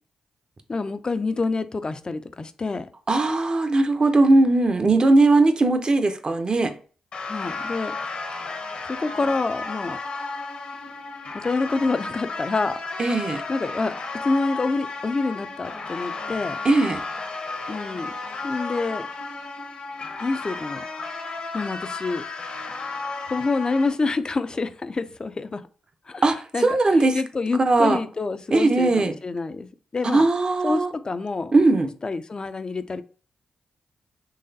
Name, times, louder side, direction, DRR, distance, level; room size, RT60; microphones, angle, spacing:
voice 1, 0.7-2.9 7.2-7.9 8.9-10.0 11.3-12.8 13.5-13.9 14.2-16.6 17.7-18.1 18.4-19.1 20.2-20.8 21.5-22.2 23.3-25.6 26.1-26.2 26.5-29.7 29.9-30.2 30.6-31.5 32.0-33.0, left 3 dB, 40° left, 0.4 m, -27 dB
voice 2, 3.1-6.7 13.0-13.4 16.6-17.0 26.2-27.2 27.6-28.0 28.5-29.1 30.0-30.9 31.5-31.9, right 2 dB, 40° right, 0.6 m, -19 dB
sound 1, 7.1-23.9, left 3 dB, 65° left, 1.0 m, -33 dB
3.9 x 3.1 x 2.7 m
supercardioid pair, 50°, 2 cm